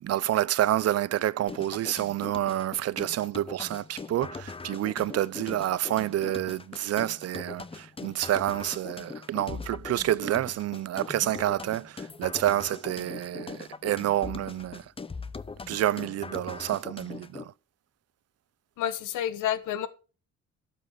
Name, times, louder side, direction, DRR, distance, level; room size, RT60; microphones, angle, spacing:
voice 1, 0.0-14.9 15.7-17.5, right 13 dB, 55° right, 0.5 m, -28 dB
sound 1, 1.5-17.5, left 4 dB, 20° left, 0.7 m, -41 dB
voice 2, 18.8-19.9, left 10 dB, 85° left, 1.1 m, -29 dB
12.0 x 6.3 x 4.6 m
cardioid pair, 90°, 30 cm